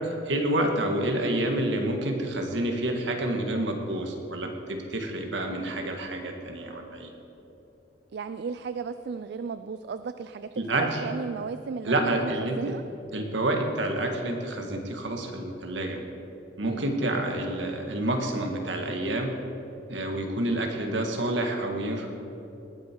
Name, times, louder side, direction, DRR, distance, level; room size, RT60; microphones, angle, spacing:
voice 1, 0.0-7.1 10.6-11.0 11.8-12.7 13.1-16.0 16.6-19.3 19.9-22.1, right 1 dB, 75° right, 3 dB, 1.7 m, -28 dB
voice 2, 8.1-12.8 16.6-16.9, right 5 dB, 60° right, 11 dB, 0.4 m, -34 dB
19.0 x 9.3 x 4.6 m, 3.0 s
head